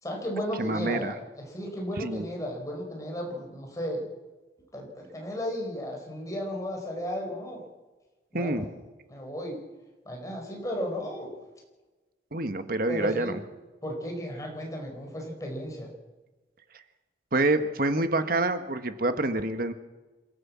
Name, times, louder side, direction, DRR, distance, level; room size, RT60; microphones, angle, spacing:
voice 1, 0.0-4.1 4.7-7.6 8.3-8.7 9.1-9.6 10.0-11.3 12.9-13.4 13.8-15.9, equal, 20° left, 0 dB, 5.0 m, -34 dB
voice 2, 0.6-1.1 2.0-2.3 8.3-8.6 12.3-13.4 17.3-19.7, right 2 dB, 50° right, 9 dB, 1.4 m, -27 dB
27.0 x 14.5 x 7.4 m, 1.2 s
head